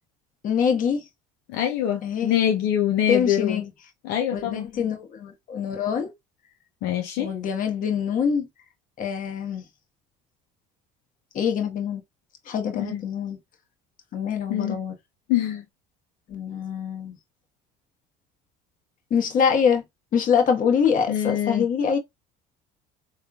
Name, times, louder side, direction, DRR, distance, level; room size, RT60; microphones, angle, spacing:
voice 1, 0.4-1.0 2.0-2.3 3.1-3.7 4.3-6.1 7.2-8.5 9.0-9.6 11.3-12.0 12.5-13.4 14.1-15.0 16.3-17.2 19.1-19.8 20.1-22.0, left 7 dB, 50° left, 1.2 m, -24 dB
voice 2, 1.5-3.6 4.0-4.7 6.8-7.3 12.8-13.0 14.5-14.8 15.3-15.6 21.1-21.7, left 10 dB, 75° left, 0.7 m, -24 dB
3.6 x 3.2 x 2.3 m
cardioid pair, 105°, 18 cm